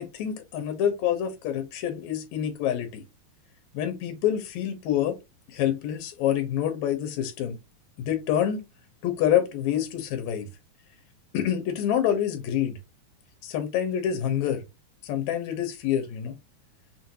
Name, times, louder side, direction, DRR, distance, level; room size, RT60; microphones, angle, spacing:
voice 1, 0.0-3.0 3.7-5.2 5.5-7.6 8.0-8.6 9.0-10.5 11.3-12.8 13.4-14.6 15.0-16.3, left 10 dB, 75° left, 2.1 m, -27 dB
5.9 x 2.6 x 2.8 m
omnidirectional pair, 3.6 m